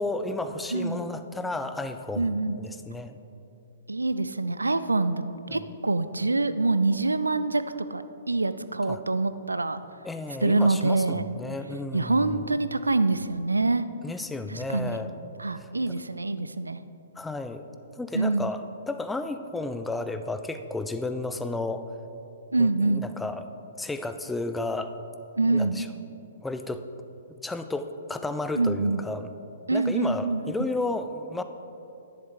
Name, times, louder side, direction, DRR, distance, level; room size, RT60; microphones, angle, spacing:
voice 1, 0.0-3.2 5.5-5.6 8.9-9.0 10.0-12.5 14.0-15.1 15.6-16.0 17.2-17.7 17.9-21.9 22.6-23.4 23.8-24.9 25.5-25.9 26.4-26.8 27.4-29.3 29.7-31.4, left 2 dB, 5° left, 9 dB, 0.4 m, -32 dB
voice 2, 0.7-1.0 2.2-2.6 3.9-5.2 5.5-7.6 7.9-9.8 10.4-11.3 11.9-13.9 14.5-15.0 15.4-16.8 18.1-18.5 22.5-23.0 25.4-25.8 28.5-29.0 29.7-30.4, right 3 dB, 75° right, 12 dB, 0.4 m, -25 dB
10.5 x 10.5 x 3.5 m, 2.9 s
figure-of-eight pair, 120°, 0 cm